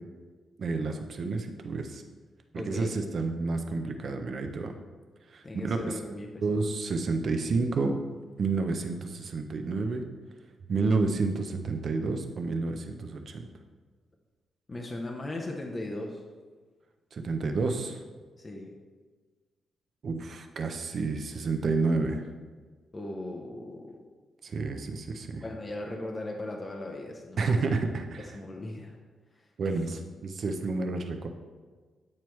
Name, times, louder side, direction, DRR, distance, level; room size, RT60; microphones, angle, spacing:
voice 1, 0.6-2.0 2.5-4.8 5.3-6.0 6.4-8.0 8.4-10.0 10.7-13.5 17.1-18.0 20.0-22.3 24.4-25.4 27.4-28.3 29.6-31.3, right 3 dB, 45° right, 6 dB, 0.5 m, -30 dB
voice 2, 2.6-2.9 5.4-6.6 14.7-16.2 18.4-18.8 22.9-23.9 25.4-27.6 28.2-29.0 29.4-29.5, left 1 dB, 20° left, 0 dB, 0.6 m, -38 dB
8.6 x 4.6 x 3.1 m, 1.4 s
wide cardioid pair, 165°, 0 cm